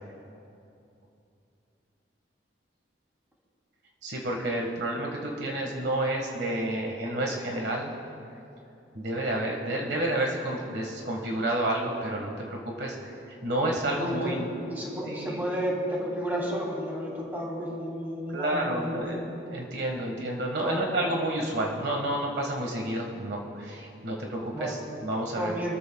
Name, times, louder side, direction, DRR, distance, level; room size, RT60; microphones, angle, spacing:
voice 1, 4.0-7.9 8.9-13.1 13.4-14.5 15.0-15.5 18.3-25.7, right 1 dB, 65° right, 0 dB, 1.6 m, -30 dB
voice 2, 13.9-19.2 20.6-20.8 24.5-24.8 25.3-25.7, equal, 10° right, -4 dB, 2.9 m, -32 dB
25.5 x 13.5 x 2.3 m, 2.7 s
head